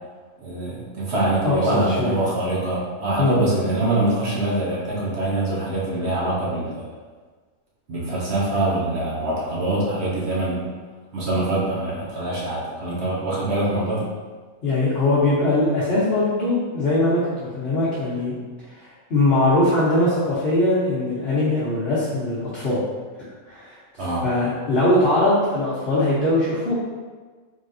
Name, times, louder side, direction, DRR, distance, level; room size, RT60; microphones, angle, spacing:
voice 1, 0.4-6.8 7.9-10.6 11.1-14.1 24.0-24.2, right 2 dB, 55° right, -6 dB, 1.1 m, -24 dB
voice 2, 1.4-2.2 3.2-3.4 14.6-18.4 18.7-22.8 23.2-23.8 24.2-26.7, left 2 dB, 50° left, -11 dB, 1.1 m, -21 dB
4.1 x 3.4 x 2.6 m, 1.4 s
omnidirectional pair, 1.4 m